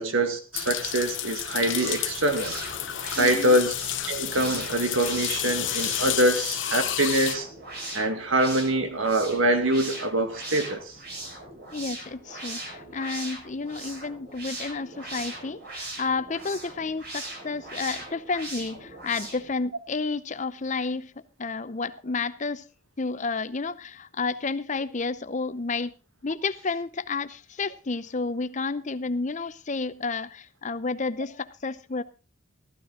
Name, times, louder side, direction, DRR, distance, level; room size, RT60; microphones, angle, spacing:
voice 1, 0.0-2.6 3.2-3.7 4.1-7.5 7.9-11.0, right 1 dB, 80° right, 2.0 m, -24 dB
sound 1, 0.5-7.4, left 12 dB, 65° left, 1.0 m, -31 dB
sound 2, 1.5-19.5, right 2 dB, 50° right, 4.9 m, -40 dB
voice 2, 3.2-3.6 11.7-21.1 21.4-22.6 23.0-26.0 26.2-32.0, left 4 dB, 35° left, 0.6 m, -31 dB
14.5 x 12.0 x 3.8 m
head